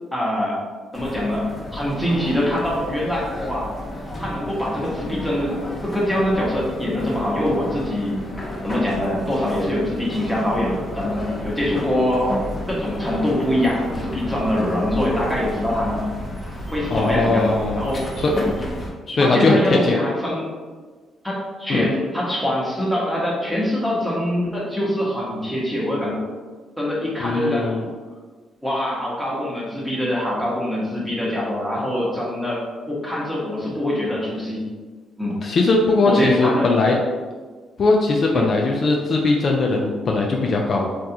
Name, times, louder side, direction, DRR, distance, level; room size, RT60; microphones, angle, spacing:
voice 1, 0.1-0.6 0.9-3.7 4.2-5.6 5.8-8.1 8.6-12.4 12.7-16.0 16.7-18.1 19.1-20.5 21.2-26.2 26.8-27.7 28.6-34.6 35.2-35.4 36.1-36.7 38.3-38.5, left 1 dB, ahead, -5 dB, 1.0 m, -24 dB
sound 1, 0.9-18.9, left 1 dB, 25° left, 0.7 m, -31 dB
voice 2, 16.9-17.8 18.2-18.4 19.1-20.0 21.7-21.9 27.2-27.9 35.4-37.0 37.8-40.9, left 3 dB, 50° left, 0 dB, 0.3 m, -19 dB
3.4 x 2.3 x 2.7 m, 1.4 s
cardioid pair, 85°, 0 cm